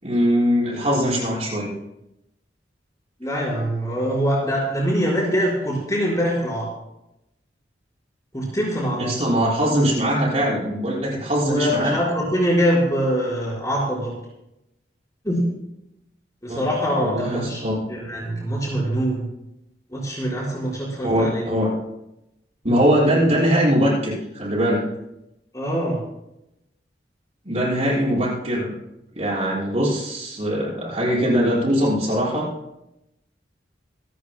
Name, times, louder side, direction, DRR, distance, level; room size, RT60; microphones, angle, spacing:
voice 1, 0.0-1.7 9.0-11.9 16.5-16.7 17.0-17.8 21.0-21.7 22.6-24.8 27.5-28.8 29.2-32.5, equal, 40° right, -8 dB, 5.8 m, -21 dB
voice 2, 3.2-6.7 8.3-9.1 11.4-14.1 15.2-15.4 16.4-17.6 17.9-19.3 19.9-21.4 25.5-26.0, equal, 20° left, -5 dB, 4.9 m, -23 dB
27.5 x 13.0 x 2.2 m, 0.86 s
head